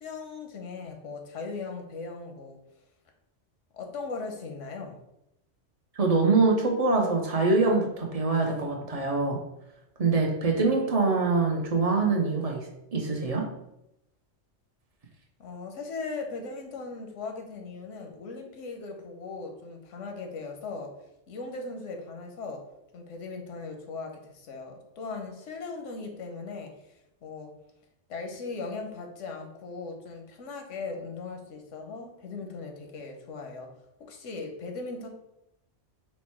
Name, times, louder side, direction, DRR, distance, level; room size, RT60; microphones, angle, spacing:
voice 1, 0.0-2.6 3.7-5.0 15.4-20.9 21.3-22.6 22.9-26.7 27.2-27.5 28.1-33.7 34.0-35.1, left 4 dB, 85° left, 3 dB, 1.1 m, -38 dB
voice 2, 6.0-9.4 10.0-12.6 12.9-13.5, right 3 dB, 40° right, 1 dB, 0.6 m, -24 dB
4.4 x 2.1 x 4.3 m, 0.83 s
omnidirectional pair, 1.2 m